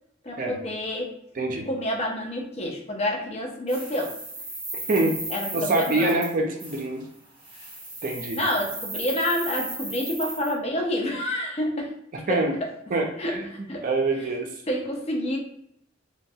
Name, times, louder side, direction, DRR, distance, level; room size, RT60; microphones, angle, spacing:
voice 1, 0.2-1.1 1.7-4.1 5.3-6.2 8.3-12.0 12.3-12.4 13.2-13.9 14.7-15.4, equal, 35° left, 0 dB, 0.5 m, -28 dB
voice 2, 1.4-1.7 4.9-5.2 5.5-7.1 8.0-8.4 12.3-12.5 12.9-14.5, right 2 dB, 45° right, 3 dB, 0.4 m, -25 dB
sound 1, 3.7-6.3 6.6-6.8 7.4-10.5, right 2 dB, 25° right, 0.9 m, -35 dB
3.0 x 2.2 x 2.7 m, 0.75 s
head